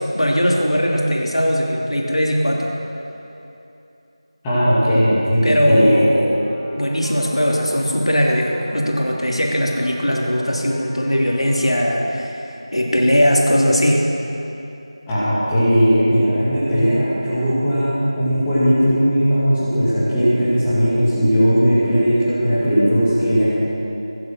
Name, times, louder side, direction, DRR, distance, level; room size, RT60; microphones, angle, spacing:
voice 1, 0.1-2.7 5.4-6.4 6.7-12.4 12.7-14.1, equal, 80° left, -2 dB, 3.0 m, -19 dB
voice 2, 4.4-6.0 15.1-23.4, equal, 5° left, -13 dB, 2.5 m, -17 dB
sound 1, 6.3-11.8, equal, 65° right, 4.1 m, -38 dB
23.5 x 8.0 x 6.3 m, 2.9 s
figure-of-eight pair, 170°, 3 cm